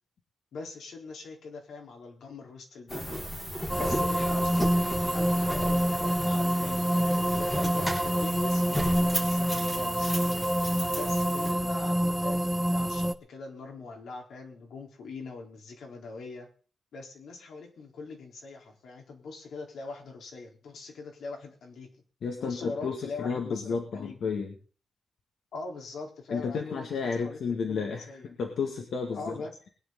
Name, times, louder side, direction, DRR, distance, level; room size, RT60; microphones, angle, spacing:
voice 1, 0.5-3.2 3.8-10.1 10.9-16.5 16.9-21.9 22.4-24.2 25.5-28.3 29.1-29.5, left 4 dB, 85° left, 1 dB, 4.0 m, -42 dB
sound 1, 2.9-11.5, equal, 10° left, 3.8 m, -35 dB
sound 2, 3.7-13.1, right 1 dB, 5° right, 0.5 m, -27 dB
voice 2, 22.2-24.5 26.3-28.1 28.4-29.7, left 5 dB, 70° left, 2 dB, 2.3 m, -32 dB
21.0 x 10.5 x 4.0 m, 0.41 s
wide cardioid pair, 155°, 0 cm